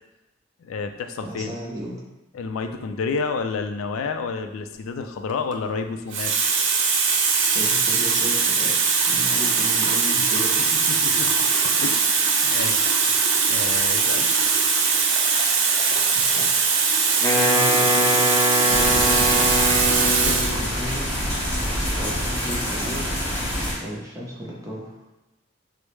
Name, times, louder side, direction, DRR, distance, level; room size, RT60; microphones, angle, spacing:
voice 1, 0.6-1.6 2.3-6.3 9.3-9.4 10.2-10.3 10.9-11.3 11.6-12.8 13.5-14.3 20.0-20.3, left 4 dB, 90° left, 7 dB, 0.3 m, -30 dB
voice 2, 1.3-2.0 7.5-8.7 9.1-10.7 16.1-16.5 17.3-18.3 18.6-19.4 20.6-21.1 21.9-23.1 23.8-25.0, equal, 15° right, -4 dB, 0.7 m, -34 dB
Water tap faucet, 5.3-5.5 6.1-20.6 21.5-21.7, right 5 dB, 60° right, 0.5 m, -21 dB
Wind instrument woodwind instrument, 17.2-20.7, left 1 dB, 15° left, 0.4 m, -23 dB
sound 1, 18.7-23.7, equal, 35° left, 1.4 m, -26 dB
4.6 x 2.0 x 3.1 m, 0.98 s
head